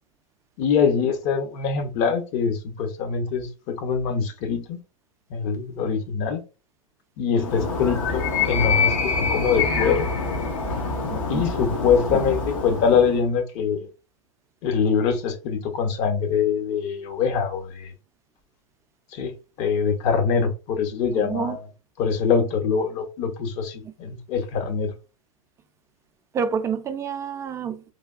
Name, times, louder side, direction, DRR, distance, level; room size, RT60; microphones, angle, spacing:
voice 1, 0.6-4.8 5.3-6.4 7.2-10.1 11.3-13.9 14.6-17.9 19.1-21.6 22.0-24.9, left 6 dB, 45° left, 0.8 m, -24 dB
Animal, 7.4-13.2, left 4 dB, 75° left, 1.2 m, -25 dB
voice 2, 11.1-11.4 21.1-21.6 23.8-23.9 26.3-27.8, right 6 dB, 15° right, 0.4 m, -28 dB
3.3 x 2.2 x 2.4 m
hypercardioid pair, 115°, 17 cm